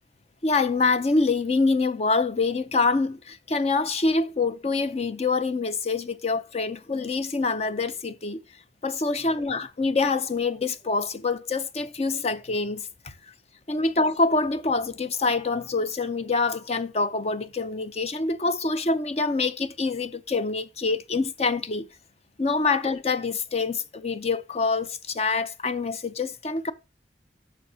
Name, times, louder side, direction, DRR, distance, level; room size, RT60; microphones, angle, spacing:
voice 1, 0.4-8.4 8.8-13.1 13.7-21.9 22.4-26.7, left 3 dB, 35° left, 0.6 m, -25 dB
9.1 x 6.3 x 2.7 m
head